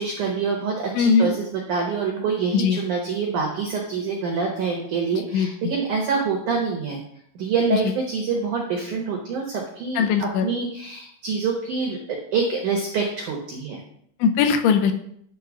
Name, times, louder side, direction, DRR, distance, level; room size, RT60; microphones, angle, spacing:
voice 1, 0.0-7.0 7.3-13.8, right 5 dB, 85° right, 0 dB, 1.7 m, -26 dB
voice 2, 1.0-1.3 2.5-2.8 5.1-5.5 10.0-10.5 14.2-14.9, left 6 dB, 80° left, 5 dB, 3.0 m, -20 dB
10.5 x 3.5 x 6.1 m, 0.68 s
omnidirectional pair, 5.5 m